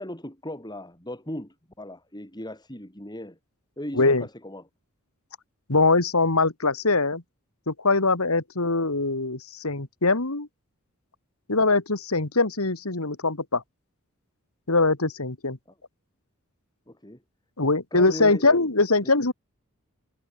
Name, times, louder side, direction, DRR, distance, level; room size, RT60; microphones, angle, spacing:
voice 1, 0.0-3.4 3.8-4.7 16.9-17.2 17.9-18.6 19.0-19.1, left 1 dB, 20° left, 6.1 m, -38 dB
voice 2, 5.7-7.2 7.7-10.5 11.5-13.6 14.7-15.6 17.6-19.3, left 3 dB, 75° left, 2.4 m, -22 dB
head